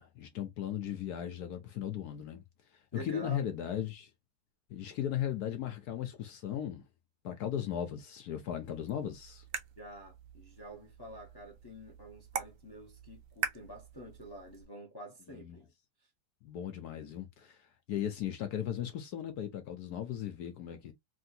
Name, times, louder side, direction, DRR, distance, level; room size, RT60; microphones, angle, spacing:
voice 1, 0.0-2.4 2.9-4.1 4.7-6.8 7.2-9.4 15.3-15.6 16.4-17.6 17.9-20.9, left 10 dB, 65° left, 1.0 m, -37 dB
voice 2, 2.9-3.5 9.8-15.7, equal, 40° left, 0.3 m, -48 dB
sound 1, 8.6-14.7, right 7 dB, 90° right, 0.7 m, -43 dB
3.3 x 2.7 x 2.6 m
omnidirectional pair, 2.2 m